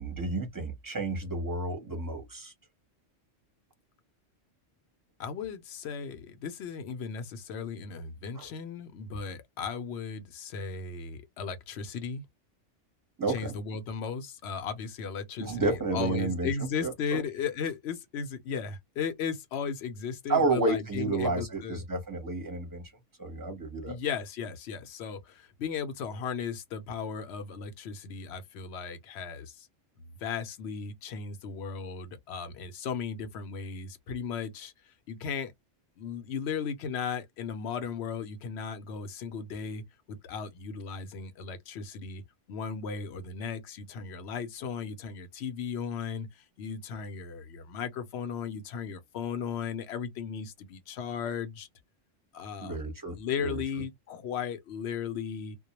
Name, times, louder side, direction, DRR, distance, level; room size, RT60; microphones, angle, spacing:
voice 1, 0.0-2.5 8.4-8.5 13.2-13.5 15.4-16.5 16.8-17.2 20.3-22.8 23.2-24.0 52.6-53.2 53.4-53.6, right 3 dB, 20° right, 0.8 m, -31 dB
voice 2, 5.2-12.2 13.3-21.8 23.8-29.7 30.2-35.5 36.0-39.8 40.1-42.2 42.5-51.7 52.3-52.8 53.1-55.6, left 6 dB, 65° left, 0.8 m, -36 dB
2.2 x 2.1 x 2.8 m
omnidirectional pair, 1.3 m